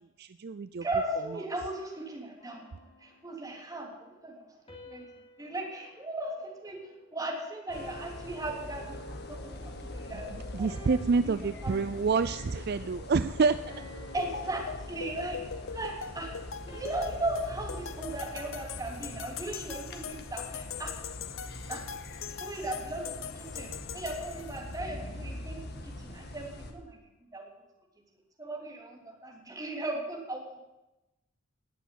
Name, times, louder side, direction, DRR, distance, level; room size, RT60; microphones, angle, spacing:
voice 1, 0.2-0.9 10.5-13.7, right 4 dB, 55° right, 13 dB, 0.4 m, -28 dB
voice 2, 0.8-4.5 4.9-5.0 5.4-9.0 9.3-11.0 11.2-11.4 11.6-11.8 14.1-15.4 15.7-16.3 16.7-20.9 21.7-21.8 22.4-27.0 27.3-27.5 28.4-30.6, right 2 dB, 20° right, 0 dB, 3.3 m, -37 dB
sound 1, 2.4-3.7 4.7-7.2 7.7-9.4 10.0-10.2 10.7-12.2 12.7-13.0 13.7-15.6 16.7-19.1, equal, 30° left, 3.3 m, -54 dB
sound 2, 7.7-26.7, left 1 dB, 55° left, 1.8 m, -43 dB
sound 3, 14.2-24.8, left 7 dB, 85° left, 0.8 m, -42 dB
19.0 x 7.1 x 9.2 m, 1.0 s
head